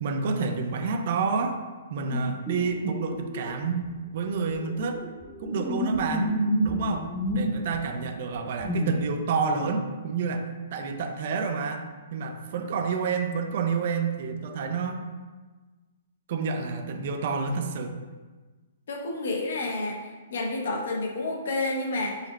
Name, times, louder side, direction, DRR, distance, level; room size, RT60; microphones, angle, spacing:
voice 1, 0.0-1.6 1.9-3.9 4.1-5.0 5.4-6.3 6.6-15.0 16.3-18.0, right 4 dB, 50° right, 6 dB, 0.4 m, -29 dB
sound 1, 2.1-3.5 3.8-3.9 4.4-7.8 8.3-9.1, equal, 5° left, 0.5 m, -30 dB
voice 2, 18.9-22.2, left 2 dB, 70° left, 0 dB, 0.8 m, -30 dB
4.0 x 2.0 x 4.1 m, 1.3 s
hypercardioid pair, 160°, 0 cm